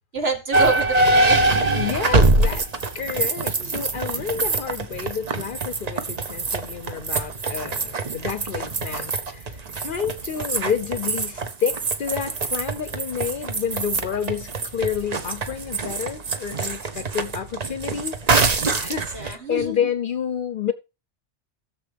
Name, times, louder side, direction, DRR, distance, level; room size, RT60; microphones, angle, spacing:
voice 1, 0.1-1.5 3.5-3.7 19.1-19.9, right 3 dB, 60° right, 2.2 m, -27 dB
sound 1, 0.5-19.3, right 3 dB, 40° right, 0.9 m, -24 dB
voice 2, 1.7-2.7 2.9-18.2 18.7-20.7, left 8 dB, 55° left, 0.7 m, -29 dB
16.0 x 6.8 x 3.4 m
omnidirectional pair, 1.2 m